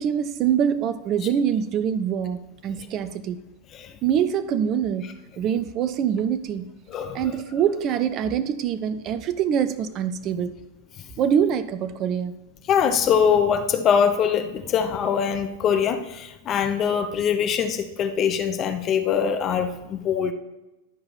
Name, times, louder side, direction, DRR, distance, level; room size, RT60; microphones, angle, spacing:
voice 1, 0.0-3.4 4.0-6.7 7.1-10.6 11.2-12.3, right 8 dB, 35° right, 0.4 m, -24 dB
voice 2, 6.9-7.2 12.7-20.3, left 7 dB, 30° left, 0.6 m, -23 dB
11.5 x 4.8 x 4.1 m
figure-of-eight pair, 90°, 0 cm